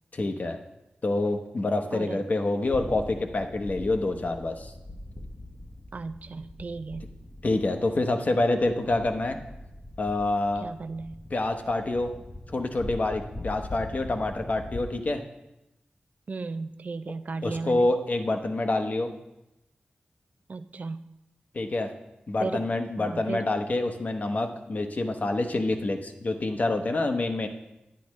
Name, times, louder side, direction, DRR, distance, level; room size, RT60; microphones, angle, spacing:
voice 1, 0.1-0.6 1.0-4.7 7.4-9.4 10.0-10.7 11.3-12.1 12.5-15.2 17.4-19.1 21.5-21.9 22.3-27.5, left 2 dB, 50° left, 5 dB, 0.9 m, -27 dB
sound 1, 2.6-14.8, left 1 dB, 20° left, 0.8 m, -42 dB
voice 2, 5.9-7.1 10.6-11.2 16.3-17.9 20.5-21.0 22.4-22.7 23.0-23.4, right 3 dB, 50° right, 11 dB, 0.3 m, -35 dB
10.0 x 10.0 x 3.1 m, 0.92 s
wide cardioid pair, 80°, 3 cm